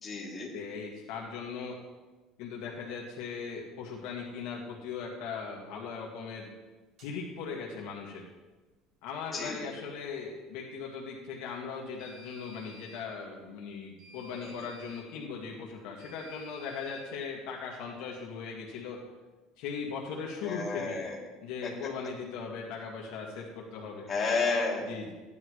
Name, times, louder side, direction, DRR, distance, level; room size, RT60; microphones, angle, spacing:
voice 1, 0.0-0.5 9.3-9.6 14.4-14.5 20.4-21.2 21.6-21.7 24.1-24.9, left 4 dB, 20° left, -4 dB, 2.7 m, -31 dB
voice 2, 0.5-1.8 2.4-6.5 7.0-8.2 9.0-19.0 19.6-21.0 21.4-24.1 24.9-25.1, left 5 dB, 70° left, -2 dB, 1.8 m, -39 dB
sound 1, 7.0-7.1 12.0-13.1 14.0-15.1 16.0-17.1, left 2 dB, 45° right, 4.2 m, -53 dB
15.0 x 10.5 x 3.2 m, 1.2 s
cardioid pair, 170°, 0 cm